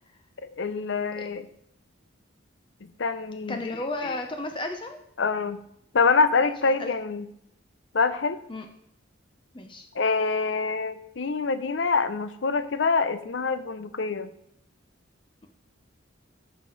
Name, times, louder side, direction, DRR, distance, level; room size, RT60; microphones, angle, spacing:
voice 1, 0.4-1.5 3.0-3.6 5.2-5.6 5.9-7.3 7.9-8.4 9.9-14.3, left 4 dB, 60° left, 12 dB, 0.6 m, -25 dB
voice 2, 3.5-5.0 6.8-6.9 8.5-8.7 9.5-9.9, left 2 dB, 25° left, 5 dB, 0.7 m, -33 dB
14.5 x 5.1 x 4.0 m, 0.74 s
head